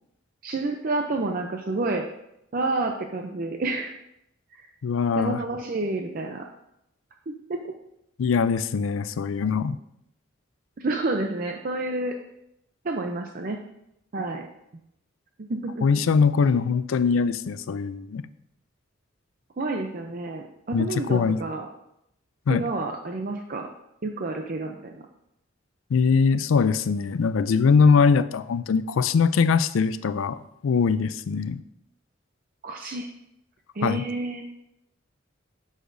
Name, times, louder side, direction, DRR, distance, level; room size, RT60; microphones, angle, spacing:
voice 1, 0.4-2.1 2.5-3.9 4.5-4.7 5.2-6.5 7.3-7.7 10.8-12.2 12.8-13.6 14.1-14.5 15.5-15.9 19.6-21.7 22.5-23.7 24.0-25.0 32.6-33.1 33.7-34.4, right 2 dB, 45° right, 3 dB, 0.5 m, -29 dB
voice 2, 4.8-5.4 8.2-9.8 15.8-18.2 20.7-21.4 22.5-22.7 25.9-31.6 33.8-34.0, left 5 dB, 85° left, 14 dB, 0.4 m, -22 dB
9.9 x 6.5 x 2.6 m, 0.81 s
head